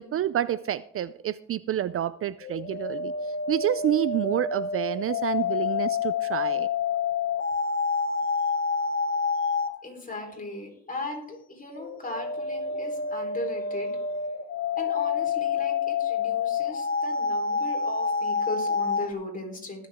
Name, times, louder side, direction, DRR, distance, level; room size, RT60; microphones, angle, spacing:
voice 1, 0.0-6.7, right 11 dB, 50° right, 17 dB, 0.4 m, -28 dB
sound 1, 2.4-9.8 11.8-19.1, left 5 dB, 40° left, 0.9 m, -28 dB
voice 2, 9.8-14.2 14.8-19.9, left 2 dB, 25° left, 1 dB, 3.9 m, -37 dB
20.0 x 7.1 x 3.6 m, 0.76 s
cardioid pair, 90°, 30 cm